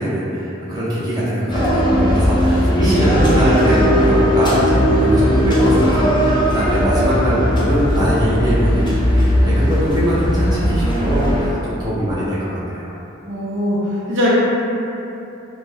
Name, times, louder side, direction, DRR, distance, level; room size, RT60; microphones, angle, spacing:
voice 1, 0.0-8.8 9.1-12.9, equal, 20° right, -10 dB, 0.7 m, -22 dB
sound 1, 1.5-11.5, equal, 25° left, 0.4 m, -17 dB
voice 2, 13.3-14.3, left 1 dB, 65° right, -7 dB, 0.6 m, -20 dB
2.4 x 2.1 x 3.3 m, 2.9 s
head